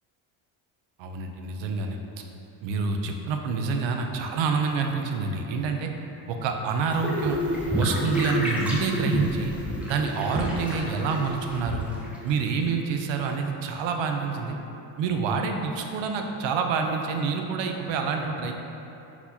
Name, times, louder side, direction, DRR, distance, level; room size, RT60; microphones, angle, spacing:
voice 1, 1.0-2.0 2.6-5.9 6.3-7.4 7.7-9.5 9.8-11.9 12.2-14.6 15.0-18.5, right 5 dB, 70° right, 4 dB, 0.6 m, -27 dB
sound 1, 6.9-12.3, equal, 5° right, 0.5 m, -29 dB
4.3 x 4.1 x 2.7 m, 3.0 s
cardioid pair, 130°, 46 cm